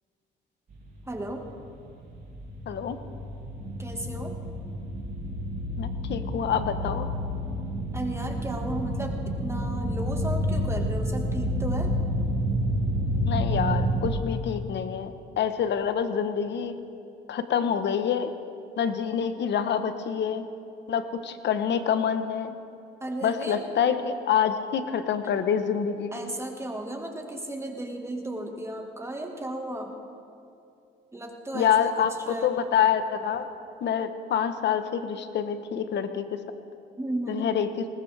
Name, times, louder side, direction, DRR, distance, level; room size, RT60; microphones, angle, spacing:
sound 1, 0.7-14.1, equal, 45° right, 3.1 m, -29 dB
voice 1, 1.1-1.5 3.8-4.4 7.9-11.9 23.0-23.6 26.1-30.0 31.1-32.6 37.0-37.5, right 1 dB, 15° right, 2 dB, 1.7 m, -34 dB
voice 2, 2.7-3.0 5.8-7.1 13.2-16.8 17.3-18.3 18.8-20.5 20.9-22.5 23.2-26.1 31.5-33.5 33.8-36.4 37.3-37.7, left 8 dB, 65° left, 9 dB, 1.1 m, -27 dB
20.0 x 19.5 x 3.4 m, 2.6 s
cardioid pair, 75°, 19 cm